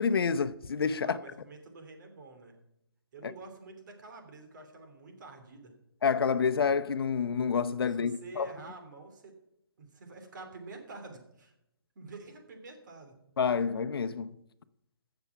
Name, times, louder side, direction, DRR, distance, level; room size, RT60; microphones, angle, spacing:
voice 1, 0.0-1.2 3.2-3.3 6.0-8.5 13.4-14.3, left 6 dB, 70° left, 0.8 m, -28 dB
voice 2, 1.0-2.5 3.1-5.7 7.9-9.3 9.8-11.5 11.9-13.1, right 3 dB, 50° right, 3.1 m, -48 dB
15.5 x 7.0 x 6.0 m
hypercardioid pair, 165°, 13 cm